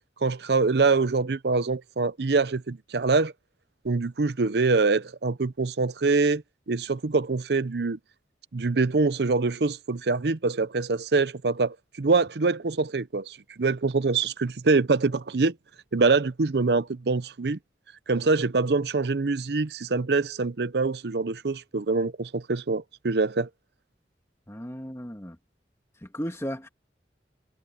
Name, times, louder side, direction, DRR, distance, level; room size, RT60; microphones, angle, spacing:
voice 1, 0.2-3.3 3.8-8.0 8.5-15.6 15.9-17.6 18.1-23.5, right 3 dB, 65° right, 0.7 m, -24 dB
voice 2, 24.5-25.4 26.0-26.7, equal, 15° left, 2.0 m, -35 dB
head